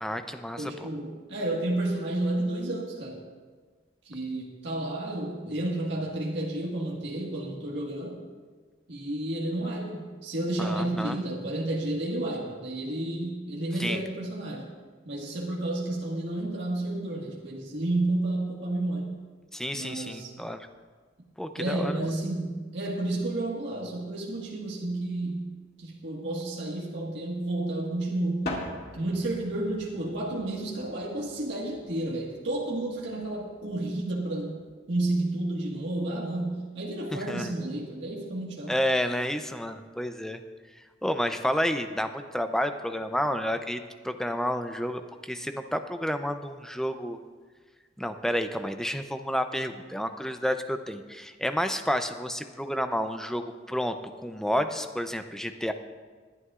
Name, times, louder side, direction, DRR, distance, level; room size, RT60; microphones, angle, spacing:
voice 1, 0.0-0.9 10.6-11.2 13.8-14.0 19.5-20.7 21.4-22.0 37.1-37.5 38.7-40.4 41.0-47.2 48.0-55.7, equal, 5° left, 7 dB, 0.5 m, -30 dB
voice 2, 0.6-3.2 4.0-8.2 8.9-14.7 15.0-19.1 19.7-20.3 21.5-25.5 25.8-28.5 28.9-38.8, right 1 dB, 70° right, -3 dB, 1.7 m, -31 dB
sound 1, 17.4-18.2 18.4-18.8 19.9-20.0 20.2-20.3 20.7-20.8 21.8-21.9 22.1-22.2 22.9-23.0 23.2-23.3 23.5-23.6 24.8-25.5 28.4-34.7, left 2 dB, 60° left, 2.2 m, -43 dB
20.5 x 11.0 x 2.5 m, 1.5 s
head